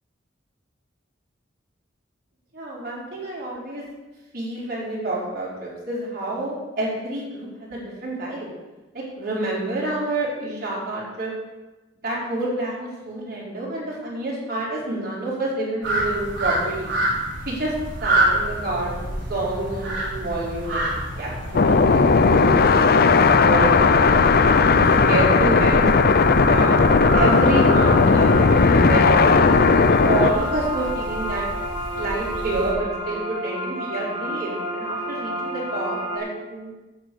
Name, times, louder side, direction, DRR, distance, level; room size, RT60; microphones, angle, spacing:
voice 1, 2.5-3.8 4.3-8.5 8.9-11.3 12.0-16.9 17.4-17.7 18.0-20.9 21.2-24.1 24.6-25.9 26.5-26.8 27.1-31.4 32.0-36.7, right 2 dB, 55° right, -5 dB, 4.4 m, -28 dB
sound 1, 15.8-32.7, right 1 dB, 75° right, 3.8 m, -28 dB
sound 2, 21.5-30.3, left 4 dB, 55° left, 0.6 m, -16 dB
sound 3, 26.6-36.2, right 1 dB, 30° right, 2.5 m, -30 dB
9.3 x 7.3 x 8.3 m, 1.1 s
head